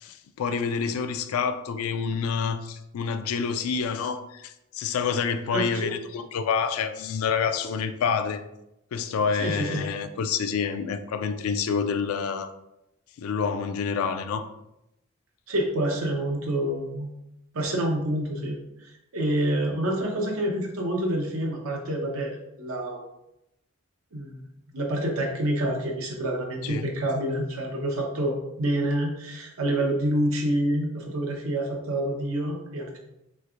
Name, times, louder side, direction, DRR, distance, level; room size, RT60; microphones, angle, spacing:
voice 1, 0.0-8.4 8.9-12.5 13.2-14.4 26.6-26.8, left 6 dB, 90° left, 9 dB, 0.3 m, -28 dB
voice 2, 5.5-5.9 9.4-9.8 15.5-17.1 17.5-23.0 24.1-24.4 24.7-33.0, right 1 dB, 85° right, 0 dB, 0.7 m, -27 dB
3.2 x 3.1 x 2.4 m, 0.87 s
head